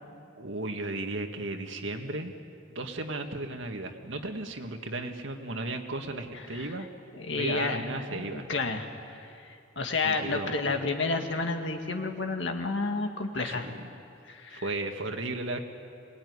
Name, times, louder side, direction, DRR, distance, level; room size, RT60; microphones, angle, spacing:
voice 1, 0.4-2.3 2.7-6.9 7.3-8.5 10.0-10.5 13.4-13.8 14.5-15.6, right 2 dB, 75° right, 5 dB, 1.9 m, -35 dB
voice 2, 7.1-7.8 8.1-13.7 14.3-14.6, left 3 dB, 65° left, 4 dB, 2.0 m, -31 dB
26.0 x 19.5 x 9.7 m, 2.6 s
head